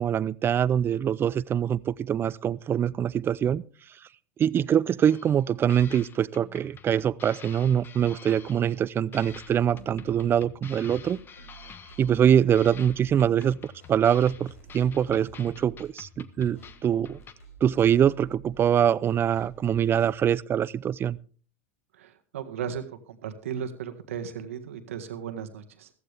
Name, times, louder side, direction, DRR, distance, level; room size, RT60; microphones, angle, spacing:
voice 1, 0.0-3.6 4.4-11.2 12.0-17.2 17.6-21.2, right 9 dB, 30° right, 0.5 m, -24 dB
sound 1, 5.0-5.4 5.7-8.9 9.1-12.3 12.5-17.3, left 6 dB, 30° left, 1.3 m, -48 dB
sound 2, 9.1-10.4 10.8-13.1 13.6-15.9 16.4-18.6 19.1-20.2, right 2 dB, 85° left, 4.8 m, -50 dB
voice 2, 22.0-25.9, right 8 dB, 80° right, 1.7 m, -36 dB
15.0 x 15.0 x 3.5 m
hypercardioid pair, 85°, 7 cm